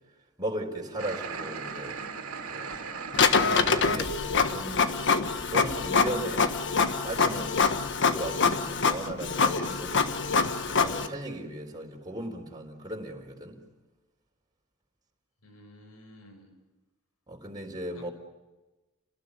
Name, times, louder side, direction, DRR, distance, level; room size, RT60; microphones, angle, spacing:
voice 1, 0.4-2.0 2.5-2.7 3.5-4.2 4.5-6.5 7.0-7.7 8.0-10.2 10.6-13.6 17.3-18.1, right 1 dB, 20° right, 4.0 m, -37 dB
sound 1, 1.0-3.9, right 5 dB, 75° right, 2.9 m, -37 dB
Printer, 3.1-11.1, left 5 dB, 55° left, 1.5 m, -25 dB
voice 2, 15.4-16.5 17.9-18.1, left 1 dB, 85° left, 6.5 m, -52 dB
29.5 x 19.0 x 9.7 m
head